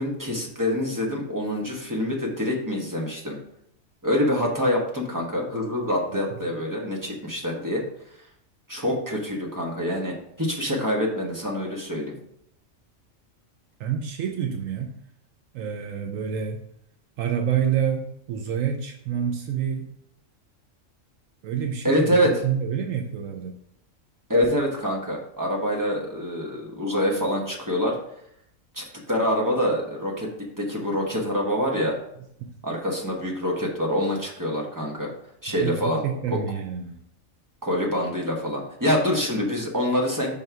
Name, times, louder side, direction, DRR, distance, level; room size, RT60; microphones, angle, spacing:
voice 1, 0.0-3.4 4.0-7.8 8.7-12.1 21.8-22.3 24.3-28.0 28.7-32.0 32.6-35.1 35.4-36.0 36.3-36.4 37.6-40.4, equal, 15° right, -1 dB, 1.1 m, -25 dB
voice 2, 13.8-14.9 15.5-16.6 17.2-19.9 21.4-23.5 32.4-32.5 35.6-36.9, right 8 dB, 80° right, 3 dB, 1.0 m, -28 dB
5.3 x 3.9 x 4.6 m, 0.74 s
omnidirectional pair, 1.4 m